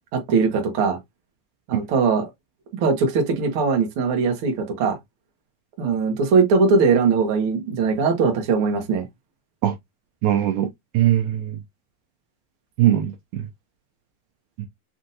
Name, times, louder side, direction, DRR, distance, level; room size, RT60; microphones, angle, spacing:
voice 1, 0.1-1.0 1.7-2.3 2.8-5.0 5.8-9.0, right 4 dB, 60° right, 1.4 m, -20 dB
voice 2, 10.2-10.7 10.9-11.6 12.8-13.4 14.6-14.7, right 12 dB, 90° right, 1.7 m, -20 dB
6.0 x 2.6 x 2.7 m
omnidirectional pair, 4.2 m